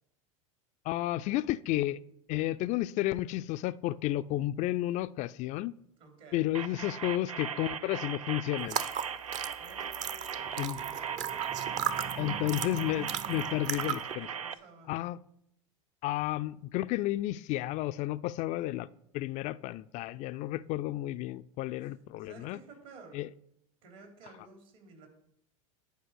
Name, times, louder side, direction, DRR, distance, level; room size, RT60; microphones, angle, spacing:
voice 1, 0.8-2.0 2.3-5.7 6.3-8.8 10.6-10.8 12.2-14.3 14.9-15.2 16.0-18.9 19.1-22.6 23.1-23.3, left 15 dB, 45° left, 0.4 m, -32 dB
voice 2, 6.0-6.5 9.6-12.2 12.5-14.9 21.8-21.9 22.2-23.2 23.8-25.1, right 3 dB, 65° right, 3.8 m, -54 dB
sound 1, 6.5-14.5, right 7 dB, 90° right, 0.6 m, -39 dB
sound 2, 8.6-14.1, right 9 dB, 45° right, 0.9 m, -36 dB
sound 3, 10.3-14.3, right 9 dB, 15° right, 0.4 m, -41 dB
10.5 x 4.9 x 8.0 m
hypercardioid pair, 90°, 17 cm